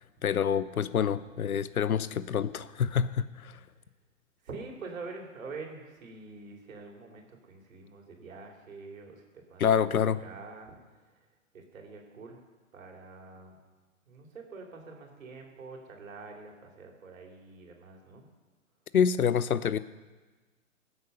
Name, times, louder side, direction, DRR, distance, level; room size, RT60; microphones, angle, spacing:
voice 1, 0.2-3.5 9.6-10.2 18.9-19.8, left 7 dB, 85° left, 16 dB, 0.8 m, -27 dB
voice 2, 4.4-9.2 9.5-10.7 11.5-12.4 12.7-13.6 14.1-18.3, right 4 dB, 70° right, 1 dB, 3.5 m, -45 dB
20.0 x 8.1 x 5.5 m, 1.3 s
hypercardioid pair, 130°, 42 cm